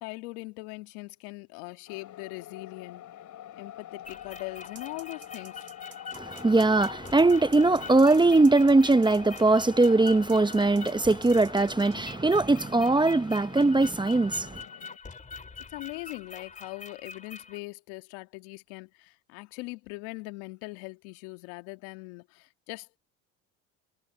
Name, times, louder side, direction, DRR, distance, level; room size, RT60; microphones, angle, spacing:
voice 1, 0.0-3.1 3.6-5.6 15.7-23.0, left 25 dB, 80° left, 2.1 m, -41 dB
sound 1, 1.9-15.0, left 11 dB, 55° left, 5.8 m, -46 dB
sound 2, 4.0-17.6, left 5 dB, 20° left, 3.0 m, -45 dB
sound 3, 4.7-12.1, right 6 dB, 30° right, 3.8 m, -50 dB
voice 2, 6.1-14.6, right 2 dB, 10° right, 1.0 m, -21 dB
supercardioid pair, 75°, 36 cm